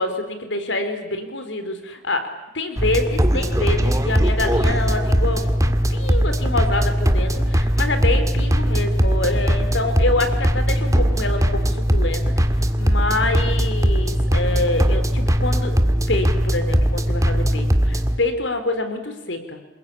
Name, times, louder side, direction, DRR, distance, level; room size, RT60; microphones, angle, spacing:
voice 1, 0.0-12.2 12.8-15.8 16.1-19.6, left 2 dB, 85° left, 8 dB, 3.9 m, -26 dB
sound 1, 2.8-18.2, equal, 20° right, 1.8 m, -19 dB
27.5 x 21.5 x 10.0 m, 0.93 s
head